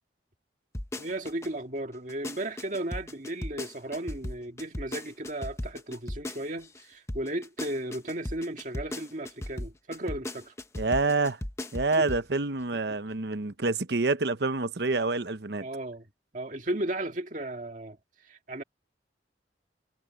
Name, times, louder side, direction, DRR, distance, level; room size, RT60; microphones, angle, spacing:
sound 1, 0.7-1.5 1.9-6.8 7.1-12.3 12.6-12.7, left 1 dB, 15° left, 0.8 m, -37 dB
voice 1, 1.0-10.5 12.0-12.1 12.9-13.0 15.6-16.0 16.3-18.0 18.2-18.6, right 1 dB, 45° right, 1.9 m, -35 dB
voice 2, 10.7-11.4 11.7-15.7, right 3 dB, 60° right, 0.9 m, -27 dB
head